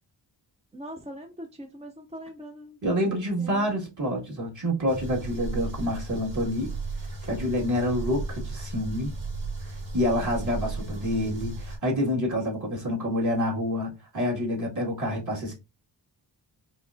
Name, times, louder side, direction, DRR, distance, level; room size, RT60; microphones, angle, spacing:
voice 1, 0.7-2.8 3.1-3.8, equal, 15° right, 0.5 m, -42 dB
voice 2, 2.8-6.7 7.2-9.1 9.7-15.5, equal, 40° right, 1.9 m, -27 dB
sound 1, 4.9-11.8, right 3 dB, 85° right, 2.5 m, -35 dB
4.6 x 3.2 x 2.5 m
wide cardioid pair, 95°, 45 cm